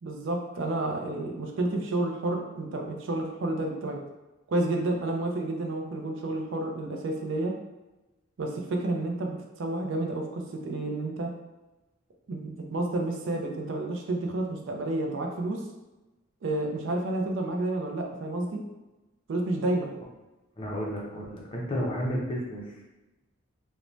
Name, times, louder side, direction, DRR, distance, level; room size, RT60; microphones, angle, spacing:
voice 1, 0.0-4.0 4.5-7.5 8.4-11.3 12.3-15.6 16.4-18.6 19.3-19.9, right 2 dB, 60° right, 2 dB, 0.4 m, -30 dB
voice 2, 20.6-22.7, equal, 25° left, -3 dB, 0.5 m, -32 dB
2.6 x 2.1 x 3.0 m, 1.0 s
head